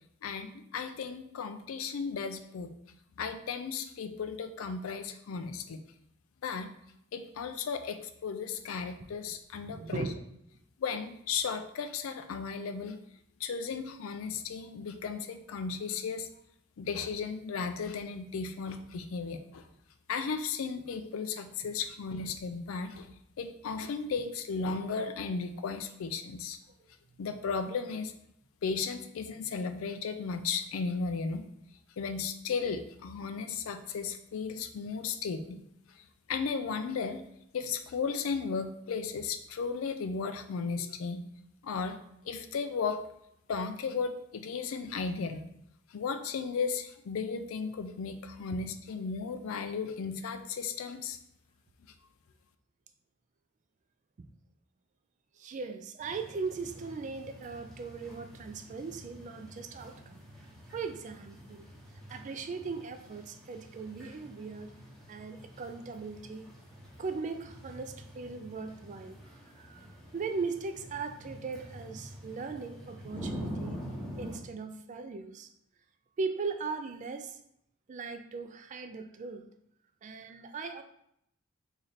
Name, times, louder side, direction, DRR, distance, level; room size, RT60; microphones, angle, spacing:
voice 1, 0.2-2.7 3.2-5.8 6.4-6.7 7.1-10.1 10.8-13.0 13.4-16.3 16.8-19.7 20.1-23.1 23.4-26.6 27.2-28.1 28.6-31.4 32.0-35.6 36.3-37.2 37.5-41.2 41.6-42.0 42.2-43.0 43.5-45.4 45.9-51.2, left 5 dB, 85° left, 9 dB, 0.4 m, -35 dB
voice 2, 9.6-10.2 54.2-54.3 55.4-60.2 60.7-61.7 62.1-64.7 65.1-66.4 67.0-69.2 69.6-69.8 70.1-73.8 74.2-75.5 76.2-77.4 77.9-79.4 80.0-80.8, right 4 dB, 35° right, 7 dB, 0.3 m, -38 dB
sound 1, 56.0-74.4, equal, ahead, 0.8 m, -46 dB
3.2 x 2.7 x 3.9 m, 0.74 s
head